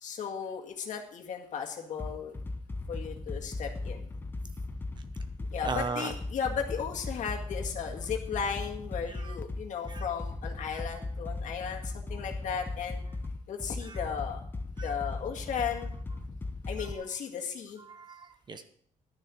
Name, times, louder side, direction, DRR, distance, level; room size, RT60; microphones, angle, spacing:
voice 1, 0.0-2.3 2.9-4.1 5.5-13.0 13.5-14.4 14.8-15.9 16.7-17.8, left 7 dB, 60° left, 1 dB, 1.9 m, -35 dB
sound 1, 2.0-16.9, left 2 dB, 15° left, 0.7 m, -37 dB
voice 2, 5.6-6.1 9.1-9.3 9.9-10.0 10.7-10.8 13.8-14.0 14.8-14.9 16.8-16.9 17.9-18.6, right 4 dB, 30° right, 9 dB, 0.9 m, -37 dB
12.0 x 6.7 x 6.2 m, 0.64 s
cardioid pair, 160°, 14 cm